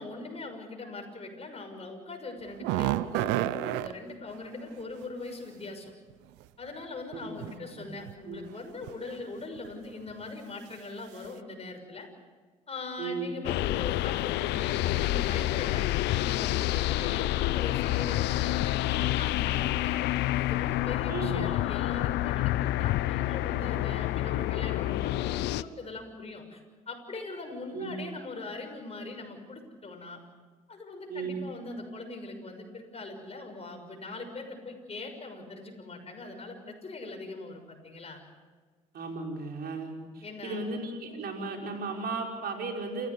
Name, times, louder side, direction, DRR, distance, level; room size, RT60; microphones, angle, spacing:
voice 1, 0.0-5.9 6.6-12.1 12.7-20.0 20.4-30.2 30.7-38.2 40.2-40.6, left 3 dB, 35° left, 4 dB, 6.4 m, -41 dB
sound 1, 2.4-3.9 6.1-6.2 7.1-7.6 7.9-8.1 8.8-9.2 9.6-9.7 10.1-10.2, right 16 dB, 75° right, 0.8 m, -30 dB
voice 2, 7.1-7.9 8.2-8.4 13.0-13.4 21.1-21.6 27.7-28.0 31.1-31.5 38.9-43.1, right 3 dB, 60° right, 1 dB, 5.3 m, -36 dB
sound 2, 13.4-25.6, left 16 dB, 70° left, 0.7 m, -28 dB
28.5 x 15.0 x 8.2 m, 1.4 s
hypercardioid pair, 55°, 18 cm